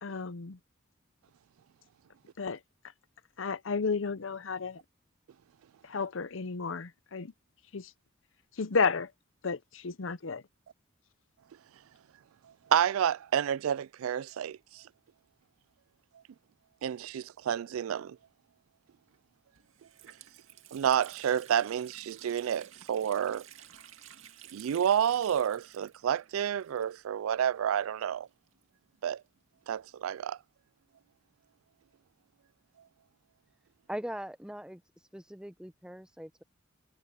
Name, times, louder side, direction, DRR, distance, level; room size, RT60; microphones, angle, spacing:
voice 1, 0.0-0.6 2.4-2.6 3.4-4.8 5.8-7.3 7.7-7.9 8.6-9.1 9.4-10.4, left 4 dB, 70° left, 0.7 m, -32 dB
voice 2, 12.7-14.8 16.8-18.2 20.7-23.4 24.5-28.3 29.0-29.2 29.7-30.4, right 9 dB, 90° right, 0.3 m, -29 dB
Water tap faucet, 19.1-19.2 19.6-27.3 27.5-27.6 28.5-30.0, right 10 dB, 70° right, 2.2 m, -53 dB
voice 3, 33.9-34.8 35.1-36.4, equal, 5° right, 0.8 m, -40 dB
head